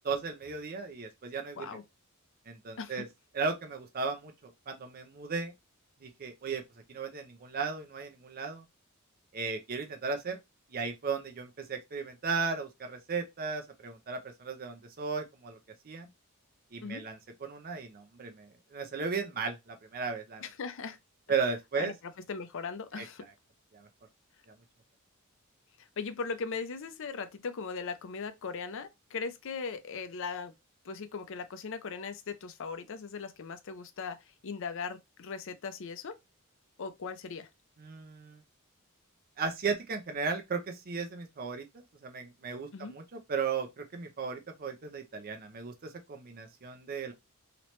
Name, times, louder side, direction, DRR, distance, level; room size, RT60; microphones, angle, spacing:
voice 1, 0.0-1.7 2.5-3.1 3.3-4.3 4.7-5.5 6.0-6.6 6.9-8.6 9.3-10.4 10.7-15.6 15.9-16.1 16.7-20.4 21.3-21.9 22.9-23.0 23.7-23.9 37.8-38.4 39.4-41.6 42.0-43.0 43.3-47.1, right 5 dB, 45° right, 0.5 m, -35 dB
voice 2, 20.4-21.0 21.8-21.9 22.3-23.3 25.8-30.5 30.8-34.2 34.4-36.2 36.8-37.5 42.7-43.0, left 5 dB, 65° left, 0.5 m, -39 dB
3.0 x 2.9 x 3.1 m
head